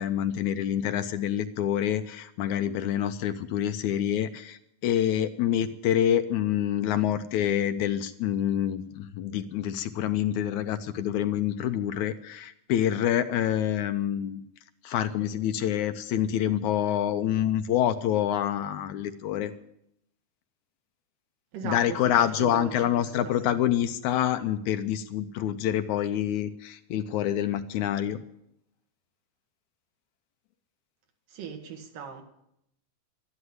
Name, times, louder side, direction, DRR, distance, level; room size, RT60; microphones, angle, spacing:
voice 1, 0.0-14.4 14.8-19.5 21.6-28.2, left 10 dB, 75° left, 1.9 m, -27 dB
voice 2, 21.5-23.5 31.3-32.2, right 7 dB, 85° right, 3.5 m, -38 dB
12.5 x 11.5 x 9.6 m
omnidirectional pair, 3.8 m